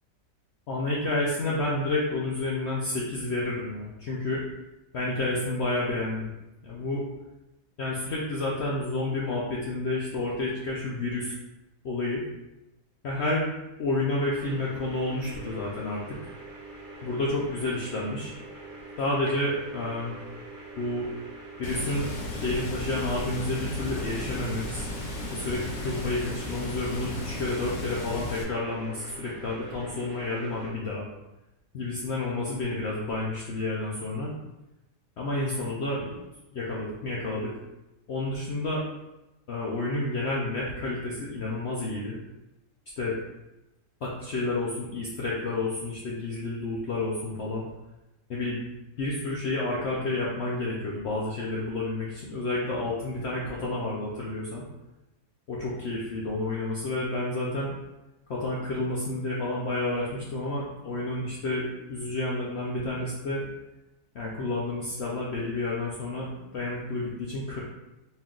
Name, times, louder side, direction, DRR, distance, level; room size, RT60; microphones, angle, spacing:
voice 1, 0.7-4.4 4.9-6.3 6.6-7.1 7.8-11.4 11.8-12.2 13.0-13.5 13.8-16.2 17.0-18.3 19.0-20.1 20.8-21.1 21.6-24.9 25.3-31.1 31.7-34.3 35.2-36.1 36.5-37.5 38.1-38.8 39.5-42.2 43.0-43.2 44.0-47.6 48.3-48.7 49.0-54.6 55.5-57.7 58.3-63.5 64.1-67.6, left 2 dB, 85° left, -4 dB, 0.5 m, -30 dB
sound 1, 14.3-30.7, right 2 dB, 70° right, 0.4 m, -44 dB
Water, 21.6-28.4, left 2 dB, 55° left, 1.0 m, -35 dB
4.3 x 2.4 x 3.7 m, 0.97 s
omnidirectional pair, 1.9 m